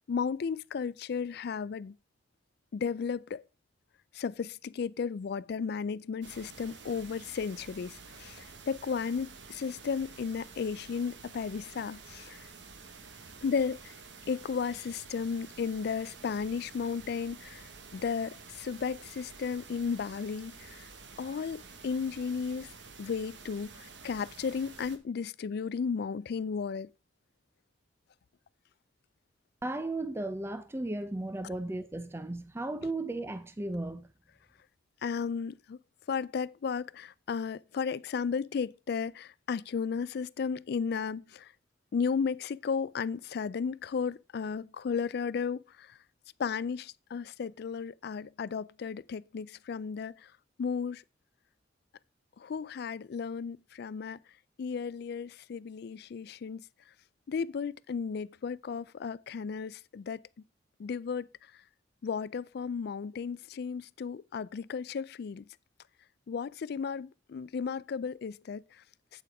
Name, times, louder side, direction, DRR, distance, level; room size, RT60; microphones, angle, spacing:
voice 1, 0.1-1.9 2.7-3.4 4.1-12.4 13.4-13.9 14.3-20.9 21.2-22.7 23.0-26.9 35.0-35.8 36.1-41.5 41.9-45.9 46.4-50.1 50.6-51.0 52.4-54.2 54.6-56.6 57.3-60.2 60.8-61.3 62.0-65.4 66.3-68.6, left 6 dB, 60° left, 0.3 m, -34 dB
sound 1, 6.2-25.0, right 4 dB, 70° right, 1.3 m, -50 dB
voice 2, 29.6-34.1, right 2 dB, 15° right, 0.5 m, -35 dB
8.4 x 8.3 x 3.5 m
head